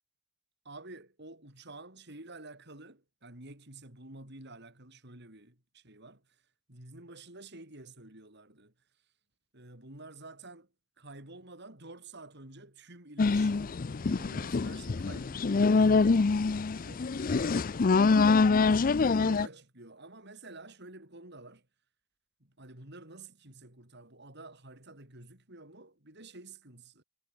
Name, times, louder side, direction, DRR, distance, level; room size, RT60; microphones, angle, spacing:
voice 1, 0.6-6.2 6.7-8.7 9.5-10.7 11.0-17.1 18.9-21.6 22.4-27.0, right 2 dB, 55° right, 6.9 m, -50 dB
sound 1, 13.2-19.5, left 4 dB, 45° left, 0.5 m, -25 dB
head